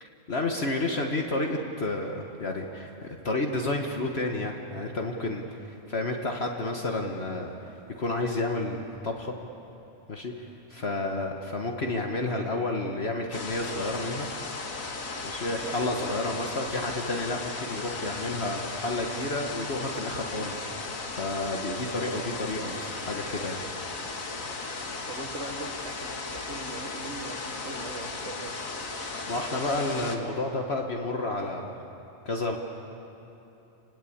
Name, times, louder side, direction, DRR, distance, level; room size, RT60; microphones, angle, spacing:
voice 1, 0.0-9.3 10.1-14.3 15.2-23.6 29.3-31.7 32.2-32.6, left 2 dB, 50° left, 2 dB, 1.6 m, -31 dB
sound 1, 13.3-30.2, left 3 dB, 85° left, 2.1 m, -36 dB
voice 2, 15.6-16.3 25.1-28.6, right 3 dB, 65° right, 4 dB, 2.0 m, -41 dB
28.0 x 20.0 x 8.6 m, 2.9 s
omnidirectional pair, 1.4 m